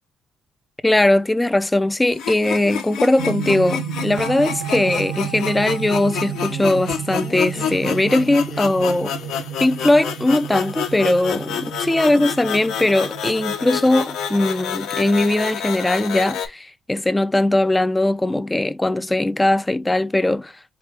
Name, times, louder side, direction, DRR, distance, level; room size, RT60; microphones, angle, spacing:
voice 1, 0.8-9.1 9.6-20.5, left 1 dB, 10° left, 0.3 m, -19 dB
sound 1, 2.1-16.5, left 8 dB, 80° left, 1.0 m, -29 dB
sound 2, 3.2-15.8, right 10 dB, 85° right, 0.5 m, -32 dB
Laughter, 6.2-11.3, left 6 dB, 40° left, 0.8 m, -40 dB
4.7 x 2.3 x 3.3 m
cardioid pair, 120°, 0 cm